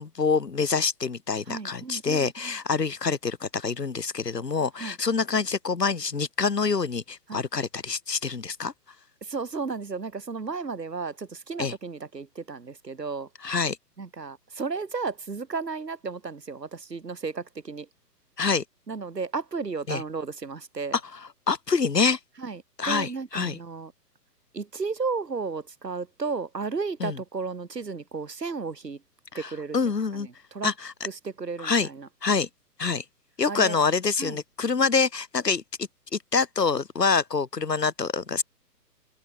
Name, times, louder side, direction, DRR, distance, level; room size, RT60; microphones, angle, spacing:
voice 1, 0.0-8.7 11.6-11.7 13.4-13.8 18.4-18.6 19.9-20.0 21.1-22.2 22.8-23.6 27.0-27.2 29.3-30.3 30.6-30.9 31.6-31.9 32.2-32.5 32.8-33.0 33.4-35.6 36.1-38.4, left 5 dB, 80° left, 4.2 m, -26 dB
voice 2, 1.5-2.6 4.8-5.0 7.3-7.4 9.2-13.3 14.0-17.9 18.9-21.0 22.4-23.9 24.5-29.0 29.3-29.8 30.2-30.7 31.0-32.1 33.5-33.8 34.2-34.4, right 4 dB, 80° right, 4.3 m, -33 dB
figure-of-eight pair, 130°, 48 cm